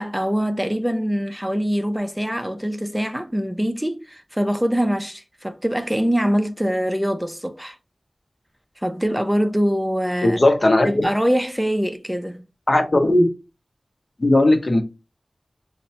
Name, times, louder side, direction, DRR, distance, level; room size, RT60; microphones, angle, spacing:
voice 1, 0.0-7.8 8.8-10.4 10.8-12.4, equal, 5° right, 0.4 m, -23 dB
voice 2, 10.2-11.1 12.7-13.3 14.2-14.8, left 1 dB, 55° left, 0.7 m, -17 dB
5.1 x 2.1 x 2.7 m
wide cardioid pair, 45°, 0 cm